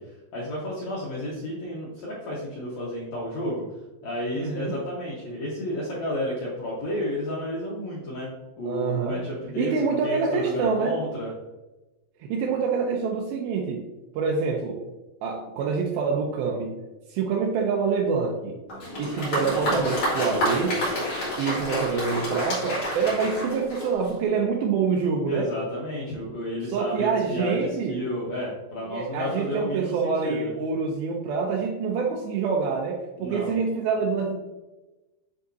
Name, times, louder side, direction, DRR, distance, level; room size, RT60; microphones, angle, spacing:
voice 1, 0.3-3.6 4.0-8.3 8.6-11.3 25.3-30.5 33.2-33.5, left 1 dB, 70° left, -6 dB, 1.7 m, -31 dB
voice 2, 4.3-4.8 8.7-9.2 9.6-11.0 12.2-13.9 14.2-14.8 15.2-16.8 17.1-18.6 19.0-20.8 21.4-25.5 26.7-28.0 28.9-34.4, right 5 dB, 85° right, -1 dB, 2.2 m, -26 dB
Applause, 18.7-24.3, equal, 40° left, 2.4 m, -28 dB
9.6 x 3.7 x 2.7 m, 1.1 s
omnidirectional pair, 4.9 m